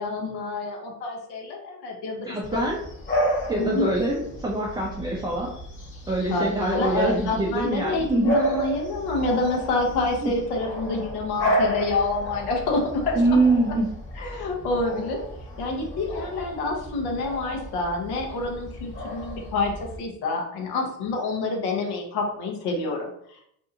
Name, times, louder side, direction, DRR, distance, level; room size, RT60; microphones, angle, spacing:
voice 1, 0.0-2.6 3.6-3.9 6.3-13.4 14.2-15.2 15.6-23.5, left 3 dB, 60° left, 1 dB, 0.9 m, -28 dB
voice 2, 2.2-2.8 3.5-5.5 6.1-8.3 10.2-10.3 13.2-13.9, right 2 dB, 10° right, -3 dB, 0.5 m, -24 dB
Bark / Bird vocalization bird call bird song, 2.4-20.0, equal, 25° left, 1.2 m, -32 dB
2.7 x 2.3 x 2.7 m, 0.70 s
hypercardioid pair, 70°, 45 cm